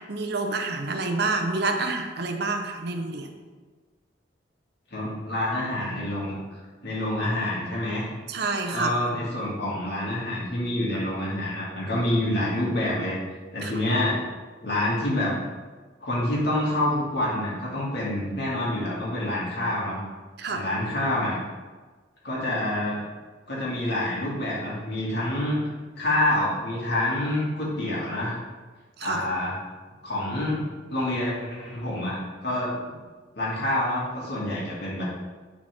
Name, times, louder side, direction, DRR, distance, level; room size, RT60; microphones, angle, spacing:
voice 1, 0.0-3.3 8.3-8.9 13.6-13.7 20.4-20.7 29.0-29.2, right 3 dB, 60° right, 5 dB, 0.7 m, -28 dB
voice 2, 4.9-6.3 6.8-8.1 8.7-13.2 13.5-14.2 14.6-15.3 16.0-20.0 20.5-21.4 22.2-23.0 23.5-25.6 26.0-28.4 29.0-29.5 30.0-30.6 30.9-32.7 33.4-35.0, left 1 dB, 60° left, -5 dB, 2.2 m, -27 dB
9.3 x 4.2 x 3.5 m, 1.4 s
head